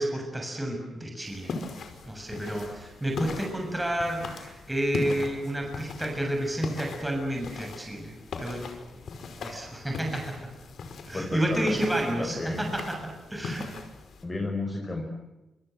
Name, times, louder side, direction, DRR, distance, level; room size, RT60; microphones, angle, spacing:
voice 1, 0.0-1.5 2.1-8.7 9.4-10.3 11.1-13.7, right 1 dB, 10° right, 1 dB, 7.1 m, -30 dB
sound 1, 1.2-14.2, left 4 dB, 65° left, 5.2 m, -39 dB
voice 2, 11.1-12.7 14.2-15.0, left 2 dB, 20° left, 1 dB, 5.5 m, -32 dB
27.5 x 27.0 x 8.0 m, 1.0 s
wide cardioid pair, 130°, 0 cm